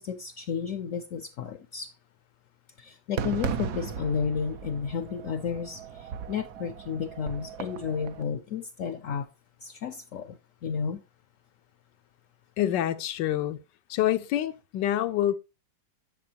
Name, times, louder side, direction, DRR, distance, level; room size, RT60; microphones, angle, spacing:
voice 1, 0.0-1.9 2.8-9.3 9.6-11.0, left 6 dB, 65° left, 0.8 m, -32 dB
Fireworks, 3.2-8.2, right 7 dB, 70° right, 1.2 m, -36 dB
voice 2, 12.6-13.6 13.9-15.3, left 12 dB, 90° left, 1.4 m, -26 dB
9.4 x 7.5 x 2.8 m
omnidirectional pair, 1.9 m